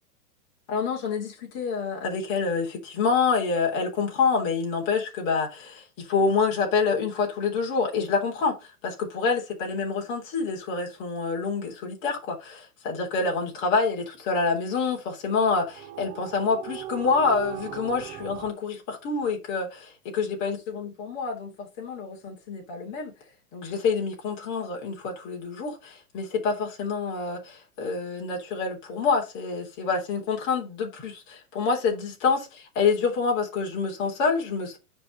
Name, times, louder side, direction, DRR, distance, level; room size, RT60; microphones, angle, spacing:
voice 1, 0.7-23.1 23.5-34.8, left 4 dB, 40° left, 3.5 m, -27 dB
sound 1, 15.2-18.5, right 12 dB, 15° right, 0.5 m, -39 dB
9.8 x 4.8 x 4.0 m
hypercardioid pair, 140°, 45 cm